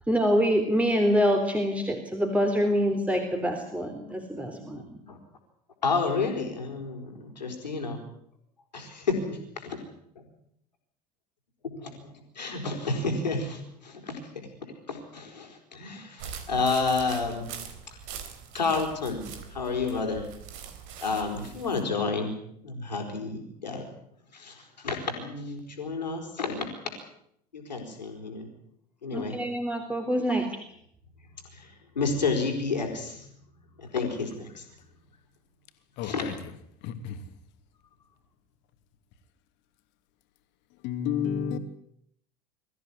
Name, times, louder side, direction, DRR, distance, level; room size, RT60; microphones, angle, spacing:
voice 1, 0.1-5.0 29.1-30.5, equal, 5° right, 3.6 m, -25 dB
voice 2, 4.7-5.2 5.8-8.0 8.7-9.8 11.6-14.5 14.9-17.5 18.5-19.2 19.5-20.3 21.0-22.3 22.6-23.9 24.3-26.7 27.5-28.5 29.0-29.4 30.3-30.4 31.5-33.3 33.8-34.6 36.0-36.3, left 4 dB, 85° left, 4.5 m, -30 dB
sound 1, 16.2-21.8, right 7 dB, 60° right, 3.8 m, -42 dB
voice 3, 36.0-36.3 36.8-37.2 40.8-41.6, left 8 dB, 60° left, 2.9 m, -30 dB
23.5 x 14.5 x 9.7 m
hypercardioid pair, 70°, 21 cm